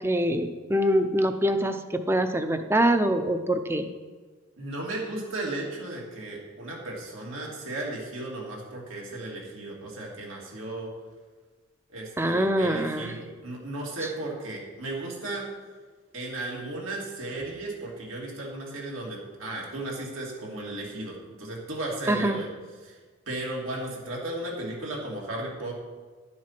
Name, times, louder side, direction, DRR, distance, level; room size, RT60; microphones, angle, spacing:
voice 1, 0.0-3.9 12.2-13.2 14.0-14.1 22.1-22.4, right 1 dB, 10° right, 8 dB, 0.6 m, -24 dB
voice 2, 4.6-10.9 11.9-15.4 16.1-22.5 22.8-23.0 23.3-25.7, right 2 dB, 85° right, -3 dB, 2.9 m, -35 dB
11.0 x 7.5 x 6.0 m, 1.4 s
head